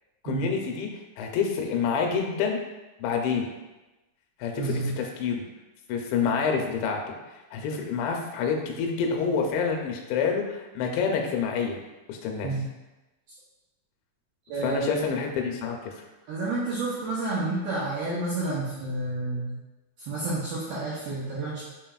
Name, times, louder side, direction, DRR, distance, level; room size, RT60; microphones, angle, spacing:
voice 1, 0.2-0.9 1.2-2.6 3.0-3.5 4.4-5.4 5.9-7.0 7.5-11.8 12.1-12.5 14.6-15.9, left 6 dB, 85° left, 2 dB, 2.8 m, -27 dB
voice 2, 4.6-4.9 12.4-12.6 14.5-14.9 16.3-19.6 20.1-21.6, right 2 dB, 85° right, -7 dB, 2.1 m, -30 dB
6.3 x 3.7 x 2.3 m, 1.1 s
omnidirectional pair, 5.3 m